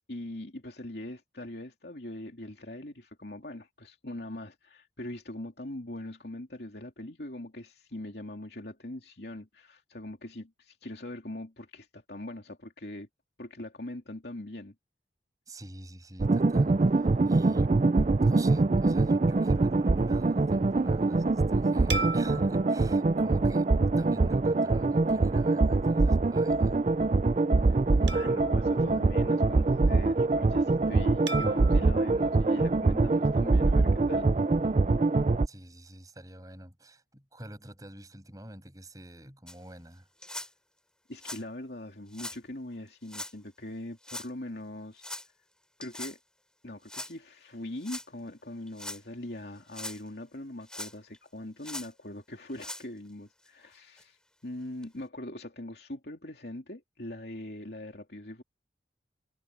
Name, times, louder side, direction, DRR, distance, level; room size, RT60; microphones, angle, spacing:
voice 1, 0.1-13.1 13.4-14.7 28.1-34.3 41.1-45.0 45.8-46.2 46.6-54.2 54.4-58.4, left 1 dB, 60° left, 2.9 m, -41 dB
voice 2, 15.5-17.8 18.2-26.8 35.4-40.1, right 1 dB, 20° right, 7.5 m, -46 dB
sound 1, 16.2-35.5, right 3 dB, 35° right, 0.4 m, -24 dB
sound 2, 21.9-24.6 25.2-25.3 28.1-29.9 31.3-33.6, right 3 dB, 80° right, 2.4 m, -40 dB
sound 3, 39.5-39.6 40.2-40.5 41.1-41.4 42.1-42.4 43.1-43.3 44.0-44.3 45.0-45.3 45.8-46.2 46.9-47.1 47.8-48.1 48.7-49.0 49.6-50.0 50.7-51.2 51.6-51.9 52.5-52.8 53.5-53.6 54.0-54.1 54.8-54.9, left 1 dB, 5° left, 5.4 m, -40 dB
head